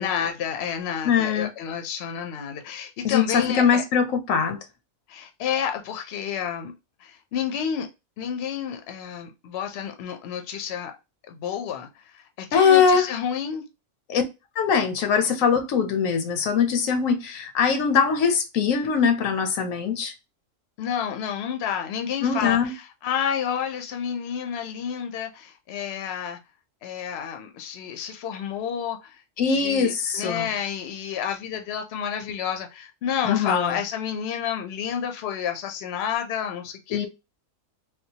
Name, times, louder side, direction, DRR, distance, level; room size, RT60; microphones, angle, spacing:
voice 1, 0.0-3.8 5.1-6.7 7.0-7.9 8.2-10.9 11.3-13.6 20.8-26.4 26.8-29.2 29.5-37.1, left 8 dB, 60° left, 0.8 m, -30 dB
voice 2, 1.0-1.5 3.0-4.6 12.5-13.1 14.1-14.2 14.6-20.1 22.2-22.7 29.4-30.5 33.2-33.8 36.9-37.1, left 6 dB, 90° left, 1.1 m, -22 dB
3.6 x 2.3 x 2.7 m
omnidirectional pair, 1.3 m